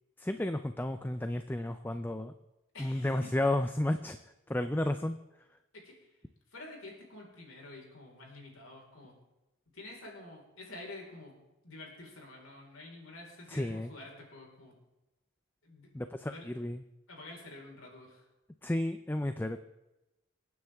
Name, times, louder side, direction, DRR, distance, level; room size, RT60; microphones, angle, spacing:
voice 1, 0.2-2.3 2.8-4.2 4.5-5.2 13.5-13.9 15.9-16.8 18.6-19.6, left 1 dB, 10° left, 9 dB, 0.4 m, -32 dB
voice 2, 2.7-3.4 5.7-6.0 6.5-9.1 9.7-11.4 11.6-14.7 15.6-15.9 16.2-16.6 17.1-18.3, left 2 dB, 80° left, -1 dB, 4.5 m, -49 dB
27.0 x 9.5 x 3.5 m, 1.0 s
head